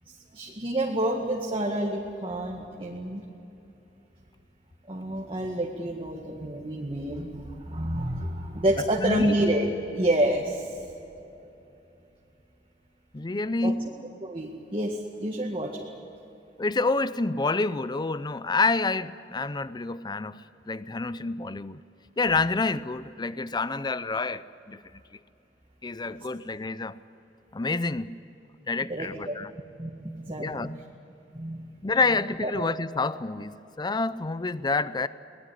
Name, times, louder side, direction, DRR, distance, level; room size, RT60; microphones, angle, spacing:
voice 1, 0.1-3.2 4.9-9.7 9.9-10.8 13.6-13.7 14.2-15.9 26.1-26.2 28.9-29.3 29.8-30.7 31.3-31.7 32.4-32.5, right 1 dB, 30° right, 1.9 m, -29 dB
voice 2, 13.1-13.9 16.6-21.8 22.2-24.8 25.8-27.0 27.5-28.2 28.7-29.5 30.4-30.8 31.8-35.1, left 3 dB, 25° left, 0.5 m, -28 dB
23.5 x 19.5 x 9.9 m
head